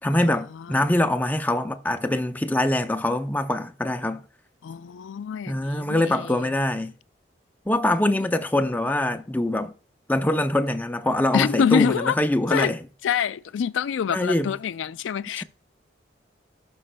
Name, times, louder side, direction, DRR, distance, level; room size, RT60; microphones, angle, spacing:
voice 1, 0.0-4.2 5.5-6.9 7.7-9.7 10.1-12.8 14.1-14.5 15.4-15.5, left 1 dB, 10° left, 0.5 m, -24 dB
voice 2, 0.5-0.9 4.6-6.3 8.1-8.2 11.3-12.2 12.5-12.7 13.0-15.4, left 7 dB, 80° left, 0.3 m, -26 dB
15.5 x 6.3 x 2.2 m
head